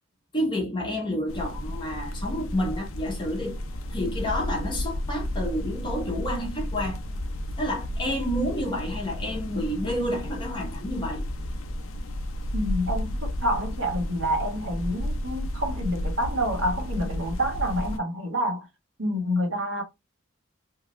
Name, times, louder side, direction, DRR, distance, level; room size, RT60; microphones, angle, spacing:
voice 1, 0.3-3.6 3.9-7.2 7.6-11.2, equal, 25° left, 0.8 m, -29 dB
sound 1, 1.3-18.0, left 1 dB, 80° left, 0.5 m, -32 dB
voice 2, 12.5-18.7 19.0-19.8, equal, 65° right, 1.3 m, -28 dB
2.8 x 2.3 x 3.1 m
head